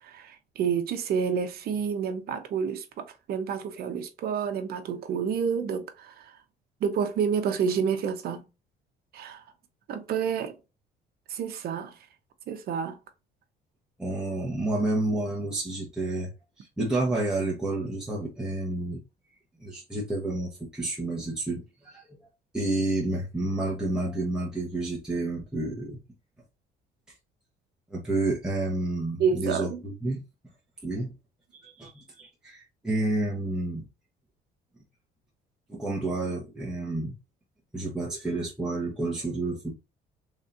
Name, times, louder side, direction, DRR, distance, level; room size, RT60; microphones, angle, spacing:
voice 1, 0.0-6.4 6.8-8.4 9.1-9.4 9.9-10.6 11.3-11.9 12.5-13.0 29.2-29.8, right 7 dB, 65° right, 0.9 m, -29 dB
voice 2, 14.0-16.3 16.6-19.0 19.6-22.2 22.5-26.0 27.9-30.2 30.8-31.1 31.5-33.8 35.7-37.1 37.7-39.7, right 2 dB, 5° right, 1.1 m, -30 dB
3.7 x 3.2 x 2.6 m
cardioid pair, 110°, 17 cm